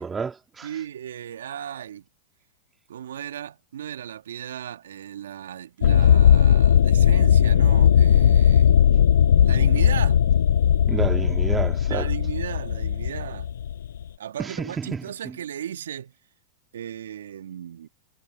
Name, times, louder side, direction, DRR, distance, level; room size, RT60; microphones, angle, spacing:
voice 1, 0.0-0.7 10.9-12.1 14.4-15.4, right 5 dB, 20° right, 2.4 m, -30 dB
voice 2, 0.6-2.0 2.9-8.7 9.4-10.3 11.9-13.5 14.2-16.1 16.7-17.9, right 10 dB, 75° right, 2.0 m, -36 dB
sound 1, 5.8-14.0, left 9 dB, 75° left, 0.5 m, -18 dB
hypercardioid pair, 100°, 0 cm